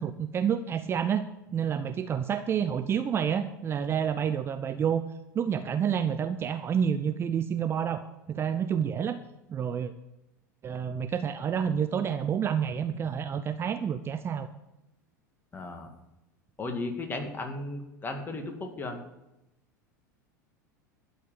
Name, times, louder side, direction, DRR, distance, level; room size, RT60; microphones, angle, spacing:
voice 1, 0.0-5.0 5.3-9.2 9.5-9.9 10.6-14.5, right 8 dB, 25° right, 11 dB, 0.6 m, -29 dB
voice 2, 15.5-15.9 16.6-19.0, left 2 dB, 20° left, 4 dB, 2.1 m, -35 dB
12.0 x 7.8 x 6.8 m, 0.93 s
figure-of-eight pair, 80°, 10 cm